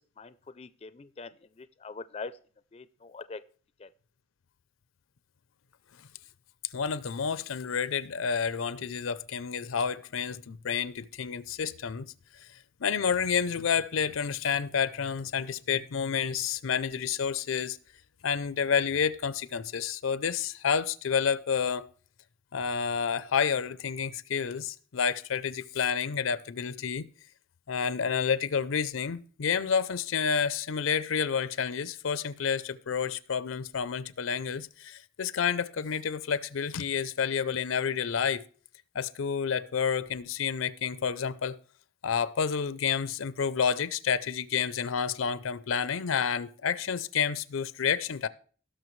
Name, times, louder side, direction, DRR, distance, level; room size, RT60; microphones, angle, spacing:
voice 1, 0.0-2.4 2.7-3.4 3.8-3.9, left 4 dB, 30° left, 0.4 m, -43 dB
voice 2, 6.7-12.1 12.8-17.8 18.2-21.9 22.5-27.0 27.7-38.4 38.9-41.6 42.0-48.3, left 6 dB, 90° left, 0.5 m, -29 dB
17.0 x 6.3 x 3.1 m
head